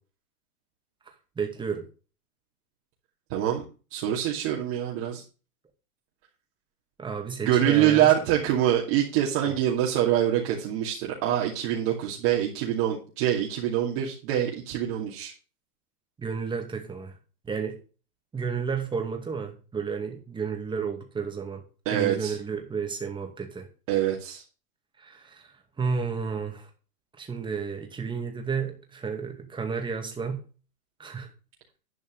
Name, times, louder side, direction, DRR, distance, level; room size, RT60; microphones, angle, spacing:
voice 1, 1.4-1.8 7.0-8.1 9.5-9.6 16.2-17.2 17.4-17.8 18.3-21.6 21.9-23.7 25.0-26.7 27.2-30.4 31.0-31.3, right 5 dB, 10° right, 3 dB, 2.2 m, -32 dB
voice 2, 3.3-3.6 3.9-5.2 7.4-15.3 21.9-22.4 23.9-24.4, right 11 dB, 40° right, -3 dB, 2.5 m, -25 dB
11.5 x 5.3 x 6.5 m, 0.35 s
hypercardioid pair, 140°, 46 cm